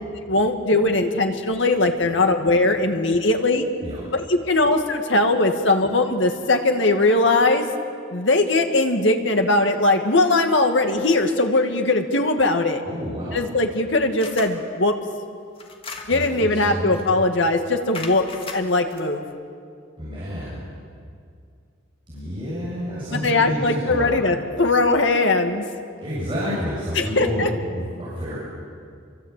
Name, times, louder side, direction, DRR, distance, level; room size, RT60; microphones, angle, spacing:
voice 1, 0.2-3.7 4.1-7.7 8.1-12.8 13.3-14.9 16.1-18.2 18.5-19.2 23.1-25.6 27.0-27.5, left 2 dB, 65° left, 5 dB, 2.3 m, -20 dB
voice 2, 12.9-13.4 16.1-17.0 20.0-20.7 22.1-24.2 26.0-28.4, equal, 25° right, -8 dB, 7.6 m, -29 dB
sound 1, 14.2-14.6 15.6-16.4 16.9-17.2 17.9-19.0, left 4 dB, 30° left, 2.2 m, -37 dB
29.0 x 24.0 x 8.5 m, 2.3 s
head